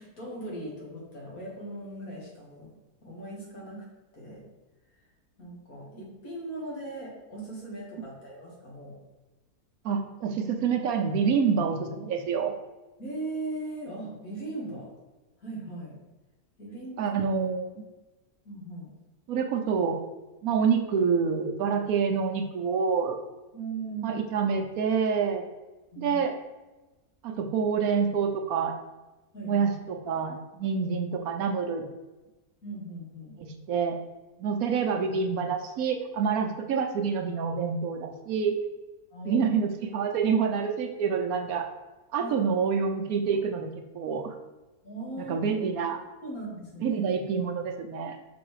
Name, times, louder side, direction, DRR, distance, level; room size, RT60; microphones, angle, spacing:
voice 1, 0.0-2.7 3.0-3.8 4.1-4.4 5.4-8.9 13.0-14.9 15.4-16.0 16.6-17.2 18.4-18.9 23.5-24.2 25.9-26.2 29.3-29.7 32.6-33.4 39.1-39.5 42.2-42.4 44.8-45.4 46.2-47.0, right 2 dB, 65° left, -4 dB, 2.4 m, -38 dB
voice 2, 9.8-12.5 17.0-17.8 19.3-20.0 20.4-23.2 24.0-25.4 26.0-26.3 27.2-28.7 29.4-31.9 33.4-34.0 34.4-38.6 39.2-41.7 42.1-44.3 45.2-46.0 46.8-48.2, right 6 dB, 75° right, 5 dB, 1.1 m, -27 dB
6.1 x 4.0 x 4.8 m, 1.1 s
omnidirectional pair, 1.6 m